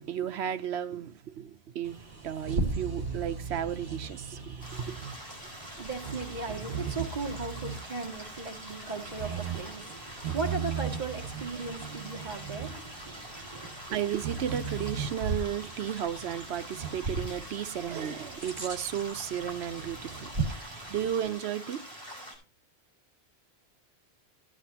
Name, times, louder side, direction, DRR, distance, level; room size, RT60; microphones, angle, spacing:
voice 1, 0.0-5.0 13.9-21.8, right 9 dB, 85° right, 1.0 m, -34 dB
Bird vocalization bird call bird song, 1.8-21.3, right 5 dB, 65° right, 2.1 m, -38 dB
sound 1, 4.6-22.3, equal, 25° right, 5.3 m, -45 dB
voice 2, 5.5-13.7, right 4 dB, 45° right, 1.9 m, -37 dB
15.0 x 9.8 x 2.8 m
omnidirectional pair, 1.1 m